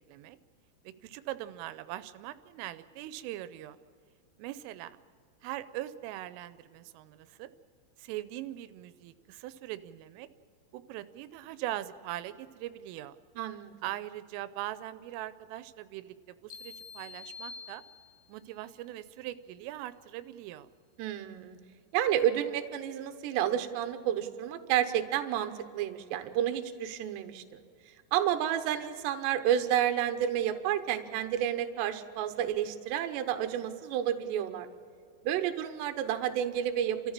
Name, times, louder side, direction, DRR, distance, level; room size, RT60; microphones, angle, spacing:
voice 1, 1.0-3.8 4.4-5.0 5.4-7.5 8.0-10.3 10.7-13.2 13.8-17.8 18.3-20.7, right 14 dB, 90° right, 13 dB, 3.3 m, -41 dB
voice 2, 13.4-13.7 21.0-21.6 21.9-27.6 28.1-34.7 35.2-37.1, right 10 dB, 70° right, 8 dB, 3.0 m, -30 dB
sound 1, 16.5-18.4, left 4 dB, 70° left, 3.3 m, -47 dB
30.0 x 14.0 x 7.4 m, 2.3 s
omnidirectional pair, 5.7 m